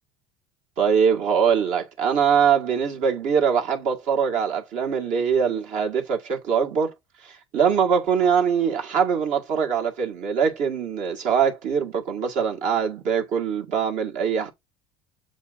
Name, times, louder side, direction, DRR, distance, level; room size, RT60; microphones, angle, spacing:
voice 1, 0.8-6.9 7.2-14.5, right 7 dB, 60° right, 2.0 m, -22 dB
7.1 x 2.8 x 5.1 m
supercardioid pair, 95°, 14 cm